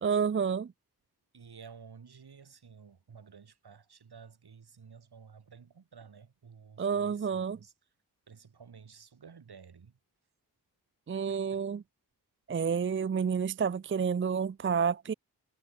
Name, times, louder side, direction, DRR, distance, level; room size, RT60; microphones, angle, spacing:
voice 1, 0.0-0.7 6.8-7.6 11.1-11.8 12.5-15.1, right 6 dB, 35° right, 0.5 m, -29 dB
voice 2, 1.3-7.7 8.3-9.9 11.3-11.6, right 6 dB, 80° right, 4.5 m, -53 dB
wide cardioid pair, 80°, 38 cm